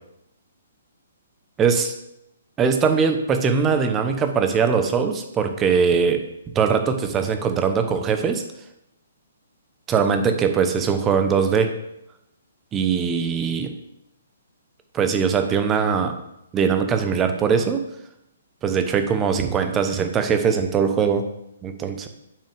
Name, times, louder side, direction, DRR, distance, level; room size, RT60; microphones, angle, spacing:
voice 1, 1.6-1.9 2.6-6.2 6.5-8.4 9.9-11.7 12.7-13.7 14.9-16.1 16.5-17.8 18.6-21.3 21.6-22.1, right 6 dB, 20° right, 7 dB, 0.9 m, -21 dB
8.6 x 6.0 x 3.5 m, 0.83 s
figure-of-eight pair, 130°, 0 cm